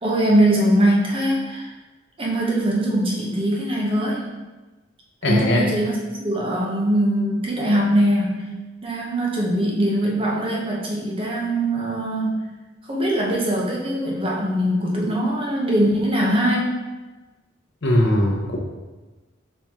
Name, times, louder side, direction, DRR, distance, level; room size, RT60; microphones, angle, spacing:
voice 1, 0.0-1.7 2.2-4.3 5.2-8.5 8.8-12.4 12.9-16.7, right 1 dB, 30° right, -3 dB, 0.7 m, -21 dB
voice 2, 5.2-5.6 17.8-18.6, left 1 dB, 65° left, 0 dB, 0.8 m, -19 dB
4.2 x 3.1 x 3.6 m, 1.2 s
head